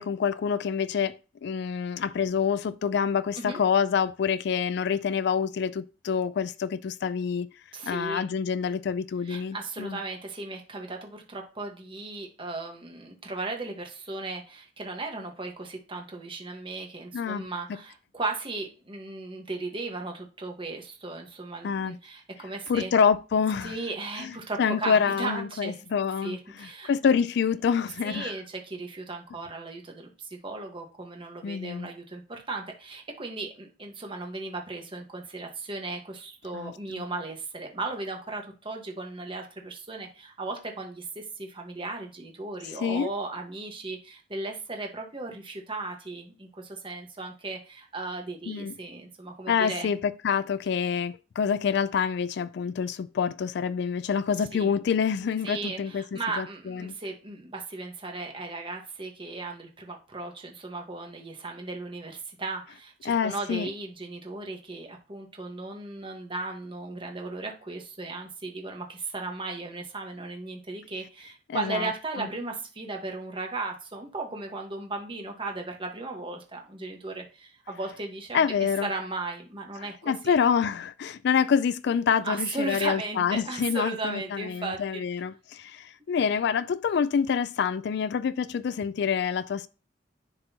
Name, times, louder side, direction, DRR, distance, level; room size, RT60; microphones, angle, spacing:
voice 1, 0.0-7.5 7.8-10.0 17.1-17.4 21.6-22.0 22.7-23.8 24.2-28.3 31.4-31.9 36.5-37.0 42.8-43.1 48.5-48.7 49.5-56.9 63.1-63.7 71.5-71.9 72.2-72.3 78.3-78.9 80.0-89.7, left 6 dB, 65° left, 0.3 m, -27 dB
voice 2, 7.7-8.2 9.2-22.9 23.6-25.9 26.2-26.9 28.0-49.9 54.4-54.7 55.4-78.4 78.8-80.3 82.2-85.0 86.0-86.1, right 3 dB, 30° right, 1.3 m, -36 dB
10.5 x 4.0 x 2.8 m
head